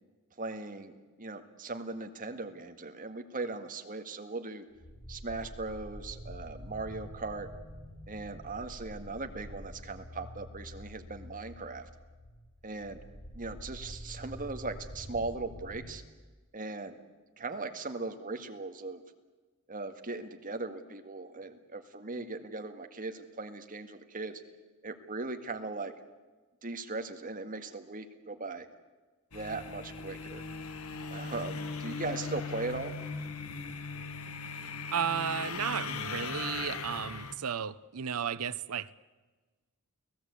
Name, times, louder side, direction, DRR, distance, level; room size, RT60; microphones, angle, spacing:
voice 1, 0.4-4.7 5.1-7.5 8.1-11.9 12.6-13.0 13.3-16.0 16.5-17.0 17.4-19.0 19.7-24.4 24.8-25.9 26.6-28.7 29.3-30.4 31.1-32.9, right 3 dB, 40° right, 1.9 m, -39 dB
sound 1, 4.8-15.9, equal, 50° left, 3.8 m, -47 dB
sound 2, 29.3-37.3, left 4 dB, 70° left, 1.6 m, -39 dB
voice 2, 34.9-38.9, right 7 dB, 80° right, 0.7 m, -33 dB
30.0 x 18.5 x 8.4 m
head